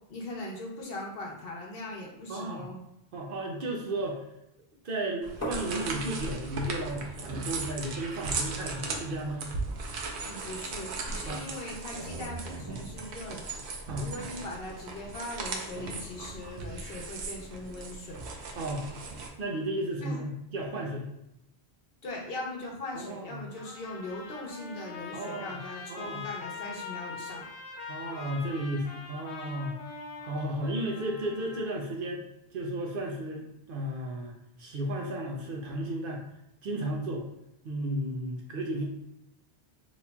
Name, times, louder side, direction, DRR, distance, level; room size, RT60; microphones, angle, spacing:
voice 1, 0.1-2.8 10.2-13.6 14.0-18.2 20.0-20.2 22.0-27.4, left 2 dB, 65° left, -1 dB, 1.0 m, -40 dB
voice 2, 2.3-2.7 3.1-4.2 4.8-9.5 11.3-11.5 13.9-14.1 18.6-18.9 19.4-21.1 22.9-23.4 25.1-25.6 25.9-26.2 27.9-29.8 30.2-32.2 32.5-34.3 34.6-36.2 36.6-37.2 37.6-38.8, right 1 dB, 60° right, 0 dB, 0.7 m, -34 dB
sound 1, 5.2-19.3, right 3 dB, 90° right, 0.9 m, -37 dB
sound 2, 5.4-11.1, equal, 25° left, 0.3 m, -45 dB
Trumpet, 23.6-31.7, left 5 dB, 90° left, 1.1 m, -43 dB
4.0 x 3.0 x 2.2 m, 0.83 s
omnidirectional pair, 1.1 m